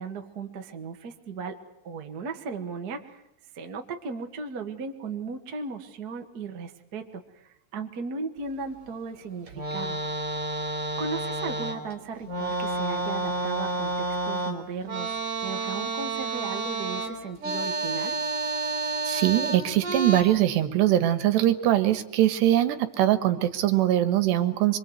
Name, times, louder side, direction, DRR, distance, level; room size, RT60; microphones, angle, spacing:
voice 1, 0.0-1.5 1.8-3.2 3.5-7.2 7.7-10.0 11.0-13.9 14.2-18.2, right 4 dB, 55° right, 4 dB, 1.1 m, -36 dB
sound 1, 9.5-11.9 12.2-20.2, right 2 dB, 35° right, 4.5 m, -30 dB
voice 2, 19.1-24.8, right 13 dB, 75° right, 10 dB, 3.3 m, -22 dB
26.0 x 24.0 x 8.2 m, 0.82 s
omnidirectional pair, 5.1 m